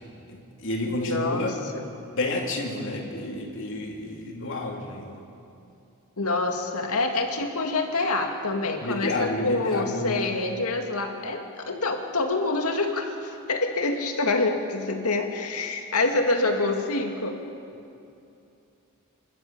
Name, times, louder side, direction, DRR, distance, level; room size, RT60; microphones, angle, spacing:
voice 1, 0.3-1.5 2.1-5.2 8.8-10.2, left 2 dB, 60° left, 0 dB, 3.2 m, -30 dB
voice 2, 0.8-1.8 6.2-17.4, left 3 dB, 85° left, 3 dB, 2.4 m, -26 dB
28.5 x 12.5 x 8.6 m, 2.6 s
head